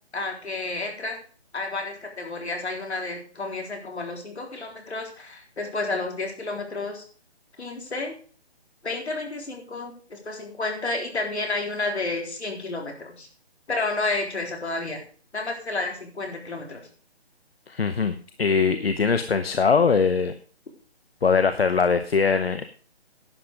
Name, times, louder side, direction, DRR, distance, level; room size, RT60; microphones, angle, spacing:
voice 1, 0.1-1.2 1.5-7.0 7.6-8.1 8.8-13.3 13.7-15.0 15.3-16.9, left 3 dB, 80° left, 2 dB, 3.8 m, -31 dB
voice 2, 17.7-18.1 18.4-20.3 21.2-22.6, left 5 dB, 65° left, 9 dB, 0.9 m, -21 dB
11.0 x 7.7 x 5.1 m, 0.42 s
hypercardioid pair, 180°, 32 cm